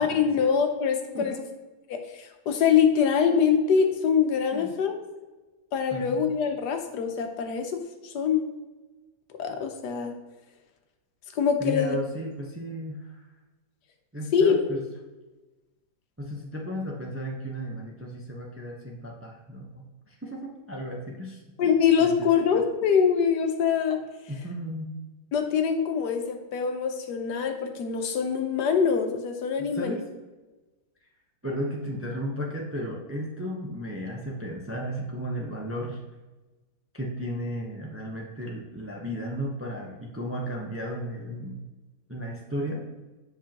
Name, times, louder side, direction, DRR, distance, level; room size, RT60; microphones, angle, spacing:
voice 1, 0.0-1.3 1.9-5.0 5.7-8.4 9.4-10.1 11.3-12.0 14.3-14.6 21.6-24.0 25.3-30.0, left 7 dB, 75° left, 5 dB, 1.4 m, -24 dB
voice 2, 5.9-6.2 11.6-13.2 14.1-14.8 16.2-21.4 22.0-22.3 24.3-25.0 29.6-30.0 31.4-36.0 36.9-41.6 42.1-42.8, equal, 15° right, -1 dB, 0.5 m, -34 dB
7.6 x 5.5 x 2.9 m, 1.2 s
omnidirectional pair, 1.8 m